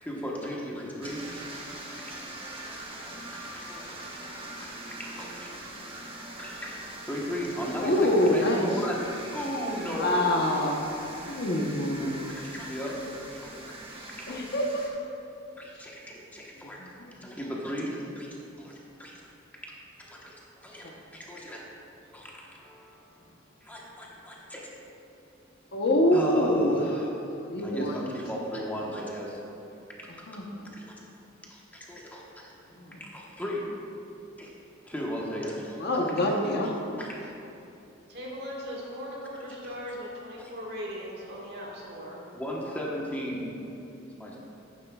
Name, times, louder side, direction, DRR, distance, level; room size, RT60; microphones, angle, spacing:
voice 1, 0.0-1.5 2.2-5.5 6.3-10.3 12.3-13.5 13.9-14.1 15.6-16.8 17.2-19.2 19.5-19.7 20.0-21.6 22.1-23.1 23.6-24.7 26.1-29.4 29.9-30.1 30.7-31.0 31.5-32.5 32.9-33.7 34.4-34.5 34.8-35.8 37.0-37.3 40.4-40.5 42.3-43.4 44.1-44.4, equal, 10° left, -3 dB, 1.1 m, -37 dB
sound 1, 1.0-14.9, right 1 dB, 30° right, 1.2 m, -42 dB
voice 2, 7.8-8.7 9.9-10.8 11.3-12.3 14.3-14.6 16.6-17.1 25.7-26.8 27.4-28.1 30.3-30.6 32.8-33.0 35.8-36.7, left 1 dB, 55° left, 1 dB, 1.0 m, -26 dB
voice 3, 38.1-42.2, equal, 55° right, -4 dB, 1.7 m, -38 dB
11.0 x 9.3 x 2.4 m, 2.7 s
head